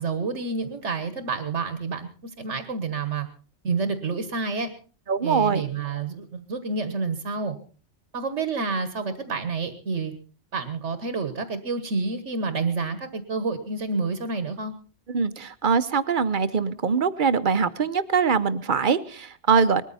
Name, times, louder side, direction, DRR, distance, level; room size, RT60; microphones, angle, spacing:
voice 1, 0.0-3.3 3.6-4.7 5.2-7.6 8.1-10.1 10.5-14.7, right 4 dB, 80° right, 10 dB, 1.7 m, -29 dB
voice 2, 5.1-5.6 15.1-19.8, right 5 dB, 45° right, 12 dB, 0.9 m, -23 dB
20.5 x 14.0 x 4.1 m, 0.38 s
omnidirectional pair, 1.2 m